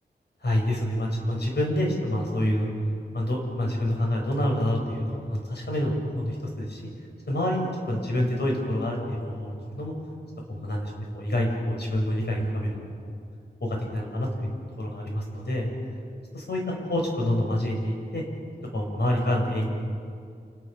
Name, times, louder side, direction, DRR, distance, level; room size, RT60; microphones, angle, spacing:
voice 1, 0.4-2.7 3.1-6.9 7.3-9.9 10.5-13.1 13.6-15.7 16.3-18.2 18.7-19.7, left 1 dB, 80° left, 0 dB, 7.2 m, -27 dB
29.5 x 28.0 x 7.1 m, 2.2 s
wide cardioid pair, 105°, 17 cm